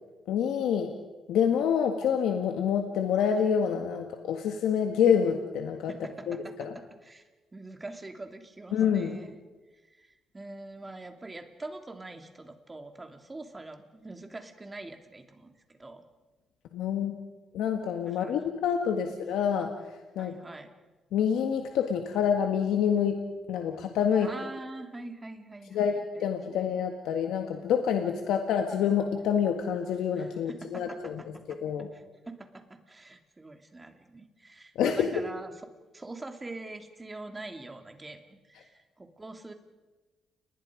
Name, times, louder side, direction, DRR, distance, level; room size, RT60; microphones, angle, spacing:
voice 1, 0.3-1.0 1.3-5.9 6.3-6.7 8.7-9.2 16.7-17.2 17.5-20.3 21.1-24.3 25.7-31.9 34.8-35.2, left 8 dB, 85° left, 4 dB, 1.7 m, -27 dB
voice 2, 5.9-7.2 7.5-9.3 9.7-16.0 18.1-18.4 19.0-19.1 20.1-20.7 24.2-26.6 30.2-31.6 31.9-35.6 35.9-39.5, right 2 dB, 20° right, 5 dB, 2.9 m, -44 dB
30.0 x 20.5 x 5.2 m, 1.2 s
cardioid pair, 90°, 0 cm